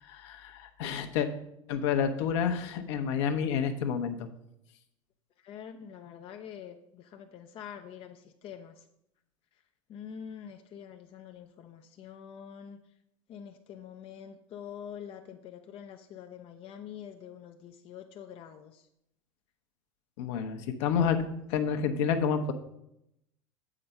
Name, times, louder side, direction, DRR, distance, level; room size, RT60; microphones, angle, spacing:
voice 1, 0.1-1.3 1.7-4.3 20.2-21.2 21.5-22.5, left 7 dB, 55° left, 6 dB, 0.9 m, -29 dB
voice 2, 5.4-8.8 9.9-12.8 13.3-18.9, left 8 dB, 35° left, 6 dB, 0.5 m, -45 dB
7.7 x 4.9 x 5.5 m, 0.81 s
figure-of-eight pair, 80°, 17 cm